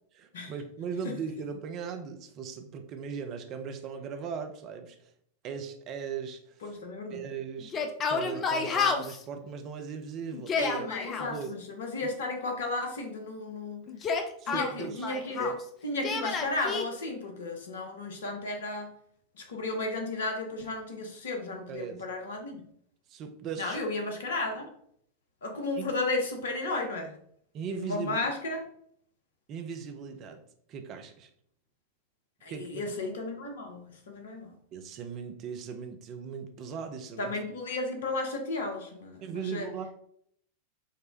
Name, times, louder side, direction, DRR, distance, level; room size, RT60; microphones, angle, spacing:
voice 1, 0.1-5.1 5.4-6.8 7.1-7.8 8.1-10.9 11.2-11.5 12.0-12.1 14.4-15.1 15.4-15.5 21.7-22.1 23.1-23.8 25.8-25.9 27.5-28.3 29.5-30.4 30.7-31.3 32.5-32.9 34.7-37.4 39.2-39.9, right 6 dB, 35° right, 6 dB, 0.5 m, -38 dB
voice 2, 6.6-7.2 10.6-13.8 14.5-18.9 19.4-22.7 23.6-24.7 25.4-27.2 27.7-28.6 32.4-34.5 37.2-39.7, left 2 dB, 60° left, 4 dB, 0.7 m, -34 dB
Yell, 7.6-9.2 10.3-11.3 13.9-15.6 16.0-16.8, left 5 dB, 30° left, 0.4 m, -30 dB
5.1 x 2.1 x 2.6 m, 0.67 s
figure-of-eight pair, 90°, 0 cm